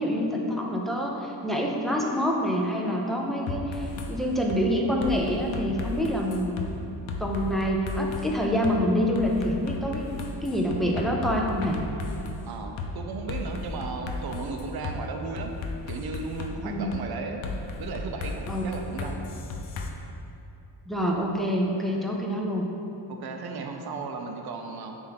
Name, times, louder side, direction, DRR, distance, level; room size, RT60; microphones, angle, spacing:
voice 1, 0.0-6.6 7.2-10.1 10.4-11.8 16.6-16.9 18.5-18.6 20.9-22.7, equal, ahead, -1 dB, 0.4 m, -26 dB
sound 1, 3.5-4.1 4.5-4.6 5.0-6.7 7.1-8.3 8.6-8.8 9.1-12.4 12.8-12.9 13.3-15.0 15.4-16.5 16.9-17.0 17.4-19.9, left 3 dB, 80° left, 0.7 m, -34 dB
voice 2, 12.4-15.5 15.9-17.4 17.8-19.3 23.1-25.0, right 4 dB, 55° right, 4 dB, 0.6 m, -35 dB
7.3 x 2.7 x 5.8 m, 2.8 s
wide cardioid pair, 150°, 45 cm